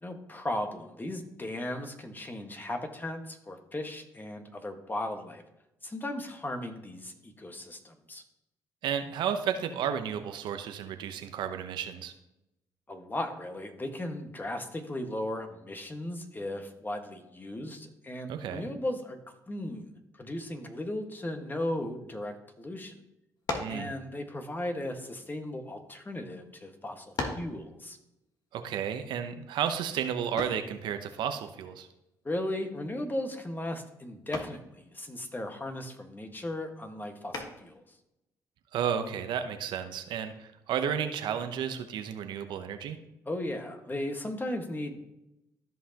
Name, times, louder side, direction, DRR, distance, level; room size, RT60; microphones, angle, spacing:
voice 1, 0.0-5.4 5.8-8.2 12.9-19.2 19.5-19.9 20.2-22.9 23.6-28.0 32.2-37.8 43.2-45.0, left 1 dB, 25° left, 5 dB, 1.5 m, -36 dB
voice 2, 8.8-12.1 18.3-18.7 23.6-23.9 28.5-31.9 38.7-43.0, right 8 dB, 75° right, 8 dB, 0.8 m, -32 dB
sound 1, 23.4-23.9 24.8-26.0 26.6-26.7 27.2-27.6 30.4-30.7 32.6-33.0 33.4-33.7 34.3-34.7 37.3-37.8, left 3 dB, 55° left, 1.5 m, -36 dB
14.0 x 5.4 x 2.9 m, 0.87 s
supercardioid pair, 55°, 8 cm